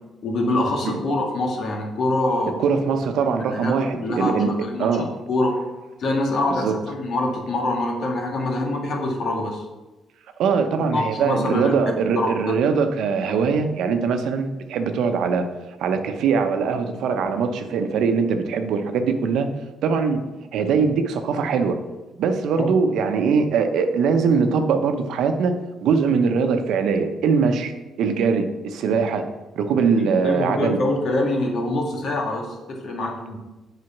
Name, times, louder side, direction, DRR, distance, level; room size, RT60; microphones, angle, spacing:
voice 1, 0.2-2.6 3.5-3.7 4.0-4.9 5.3-5.5 6.0-9.7 10.9-11.7 12.1-12.3 22.6-22.7 30.2-33.4, left 2 dB, 65° left, 0 dB, 2.0 m, -24 dB
voice 2, 2.6-4.5 4.8-5.1 6.5-6.7 10.4-15.5 15.8-19.5 19.8-20.2 20.5-21.8 22.2-29.3 29.5-30.8, right 5 dB, 80° right, 7 dB, 0.8 m, -22 dB
7.8 x 5.0 x 5.9 m, 1.1 s
cardioid pair, 90°, 0 cm